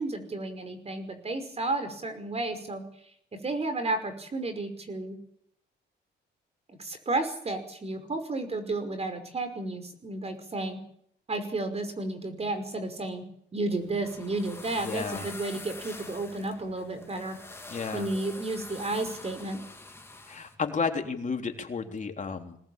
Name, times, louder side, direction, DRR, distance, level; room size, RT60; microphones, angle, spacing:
voice 1, 0.0-2.8 3.4-5.2 6.7-10.8 11.3-13.2 13.5-17.4 17.9-19.7, right 2 dB, 30° right, 9 dB, 5.5 m, -32 dB
sound 1, 13.7-20.5, left 2 dB, 10° left, 3.5 m, -45 dB
voice 2, 14.8-15.3 17.7-18.1 20.3-22.6, left 5 dB, 40° left, 4 dB, 3.7 m, -32 dB
23.0 x 18.5 x 8.9 m, 0.68 s
cardioid pair, 90°, 20 cm